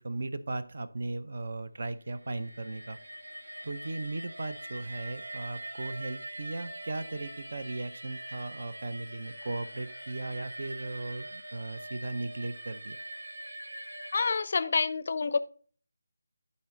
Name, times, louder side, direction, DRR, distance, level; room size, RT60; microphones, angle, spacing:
voice 1, 0.0-3.0 3.6-13.0, right 2 dB, 55° right, 0.6 m, -37 dB
sound 1, 2.2-14.4, right 1 dB, 90° right, 1.0 m, -43 dB
voice 2, 14.1-15.4, left 4 dB, 45° left, 0.4 m, -28 dB
11.0 x 4.2 x 3.7 m
figure-of-eight pair, 165°, 0 cm